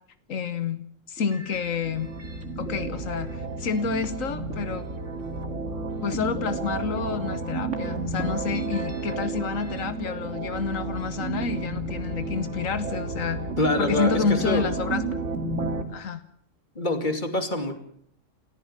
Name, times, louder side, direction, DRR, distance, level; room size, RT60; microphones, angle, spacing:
voice 1, 0.3-0.8 1.1-2.1 2.6-4.9 6.0-13.4 13.8-15.0 15.9-16.2, left 6 dB, 90° left, 11 dB, 1.6 m, -29 dB
sound 1, 1.2-15.8, right 3 dB, 65° right, 2.6 m, -32 dB
voice 2, 13.6-14.7 16.7-17.8, left 1 dB, 35° left, 7 dB, 2.9 m, -25 dB
29.5 x 14.5 x 7.3 m, 0.66 s
omnidirectional pair, 1.3 m